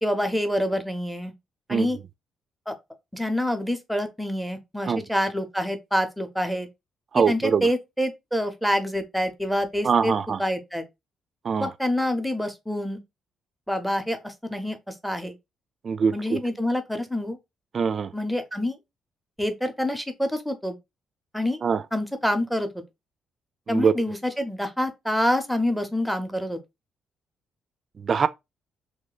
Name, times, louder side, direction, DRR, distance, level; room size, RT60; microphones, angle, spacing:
voice 1, 0.0-1.3 1.7-2.0 2.7-2.8 3.1-6.7 7.2-10.1 10.4-10.8 11.6-13.0 13.7-15.3 16.1-17.4 18.1-18.8 19.4-20.8 21.3-21.6 21.9-22.7 23.7-26.6, equal, ahead, 0.7 m, -27 dB
voice 2, 7.1-7.7 9.8-10.4 11.4-11.7 15.8-16.4 17.7-18.1 21.6-21.8 23.7-23.9 28.0-28.3, right 6 dB, 45° right, 0.3 m, -23 dB
3.1 x 2.1 x 3.9 m
cardioid pair, 90°, 0 cm